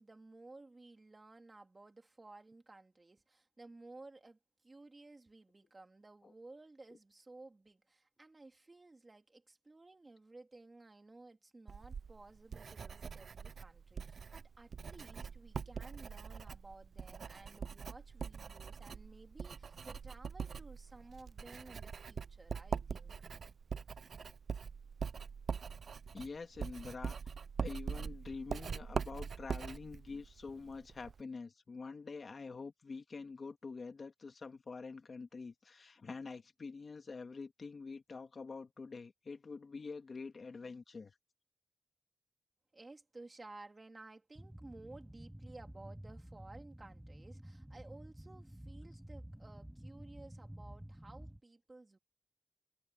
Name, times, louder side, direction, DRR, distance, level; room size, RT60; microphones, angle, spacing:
voice 1, 0.0-4.4 4.6-23.1 42.7-52.0, right 2 dB, 25° right, 3.3 m, -56 dB
Writing, 11.7-31.2, right 6 dB, 55° right, 0.4 m, -43 dB
voice 2, 26.1-27.2 27.6-41.1, left 4 dB, 45° left, 1.7 m, -46 dB
sound 1, 44.3-51.4, right 1 dB, 5° right, 1.3 m, -51 dB
wide cardioid pair, 120°, 0 cm